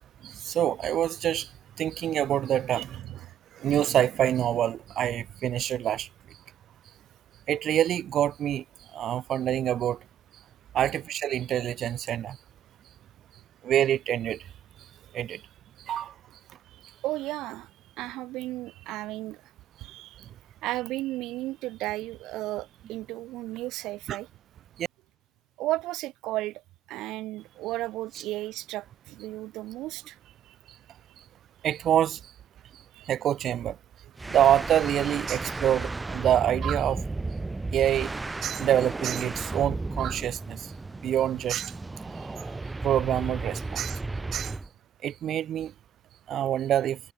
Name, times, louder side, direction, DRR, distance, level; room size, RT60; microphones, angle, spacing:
voice 1, 0.2-1.5 1.8-3.2 3.6-6.1 7.5-8.6 8.9-10.0 10.7-12.4 13.6-14.4 15.1-15.4 15.9-16.1 24.1-24.2 24.8-24.9 31.6-32.2 33.1-33.8 34.3-37.0 37.7-38.1 38.4-40.6 41.0-41.7 42.8-44.0 44.3-44.5 45.0-45.7 46.3-47.0, right 11 dB, 65° right, 0.6 m, -26 dB
voice 2, 17.0-17.7 18.0-19.4 19.8-20.2 20.6-24.3 25.6-26.6 26.9-30.1 30.4-30.5 32.9-33.0 42.2-42.3, right 17 dB, 85° right, 3.4 m, -34 dB
sound 1, 34.2-44.7, right 2 dB, 20° right, 1.6 m, -34 dB
cardioid pair, 85°, 0 cm